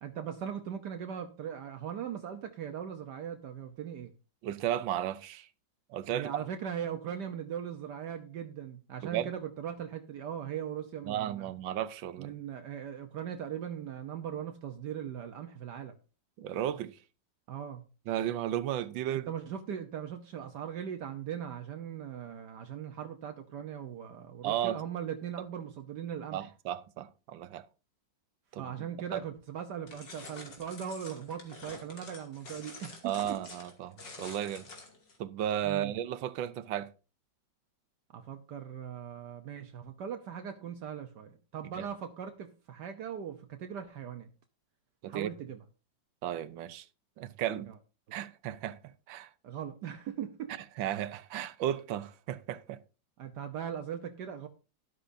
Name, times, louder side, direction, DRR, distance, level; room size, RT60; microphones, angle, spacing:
voice 1, 0.0-4.1 6.1-11.5 12.2-16.0 17.5-17.8 19.1-26.5 28.6-33.4 35.6-35.9 38.1-44.3 45.1-45.6 47.7-47.8 49.4-50.5 53.2-54.5, right 8 dB, 70° right, 1.4 m, -39 dB
voice 2, 4.4-5.5 5.9-6.4 9.1-9.3 11.1-12.3 16.4-17.0 18.1-19.3 24.4-24.8 26.3-27.6 28.5-28.7 29.1-29.2 33.0-34.7 35.2-36.9 41.7-41.9 45.0-45.3 46.2-46.8 47.2-47.7 48.1-48.8 49.1-49.3 50.8-52.8, right 11 dB, 90° right, 1.5 m, -34 dB
sound 1, 29.9-35.2, left 3 dB, 70° left, 3.2 m, -48 dB
13.0 x 11.5 x 2.7 m
omnidirectional pair, 2.0 m